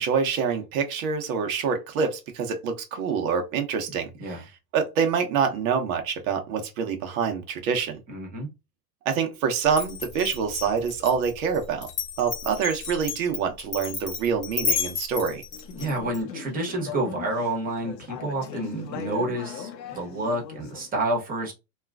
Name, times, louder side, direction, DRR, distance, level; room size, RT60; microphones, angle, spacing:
voice 1, 0.0-4.4 4.7-8.0 9.0-11.9 12.2-15.4, right 6 dB, 55° right, 0.9 m, -26 dB
voice 2, 8.1-8.5 15.7-21.5, right 2 dB, 15° right, 1.1 m, -29 dB
Glass, 9.7-16.2, left 5 dB, 25° left, 0.9 m, -32 dB
Conversation / Chatter, 15.5-20.9, left 7 dB, 85° left, 0.8 m, -39 dB
2.9 x 2.4 x 2.3 m
hypercardioid pair, 115°, 49 cm